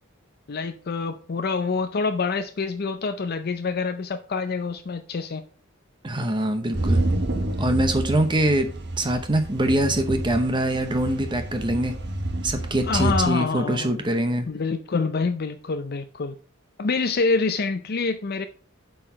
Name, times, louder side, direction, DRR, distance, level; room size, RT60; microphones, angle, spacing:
voice 1, 0.5-5.4 12.9-14.0 14.5-16.4 16.8-18.5, left 4 dB, 50° left, 0.5 m, -26 dB
voice 2, 6.0-7.0 7.6-8.7 9.0-11.9 12.4-14.5, right 1 dB, 25° right, 0.7 m, -23 dB
sound 1, 6.7-13.3, right 1 dB, 55° right, 1.1 m, -28 dB
7.4 x 4.7 x 5.5 m
head